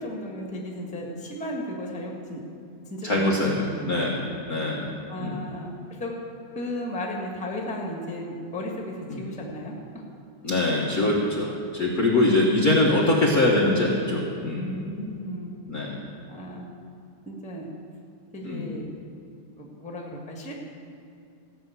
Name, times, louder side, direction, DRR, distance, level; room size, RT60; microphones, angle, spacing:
voice 1, 0.0-2.4 2.8-4.1 5.1-6.1 6.5-10.0 14.6-15.6 16.3-16.7 17.2-17.7 18.3-18.9 19.6-20.5, equal, 5° left, -1 dB, 0.7 m, -35 dB
voice 2, 3.0-4.2 4.5-4.9 5.2-5.4 9.1-9.2 10.4-14.7 15.7-16.0 18.4-18.7, left 2 dB, 80° left, -4 dB, 0.8 m, -23 dB
15.5 x 5.8 x 8.1 m, 2.5 s
omnidirectional pair, 3.5 m